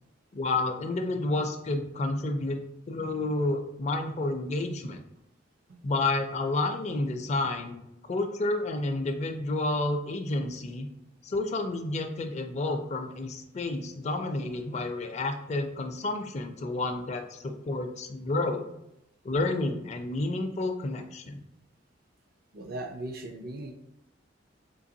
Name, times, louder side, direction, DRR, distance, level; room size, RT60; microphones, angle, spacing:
voice 1, 0.3-2.6 2.9-5.0 5.8-10.9 11.2-18.6 19.2-21.4, left 2 dB, 40° left, 6 dB, 0.4 m, -30 dB
voice 2, 22.5-23.7, right 1 dB, 55° right, 4 dB, 0.4 m, -38 dB
3.8 x 2.8 x 2.7 m, 0.84 s
head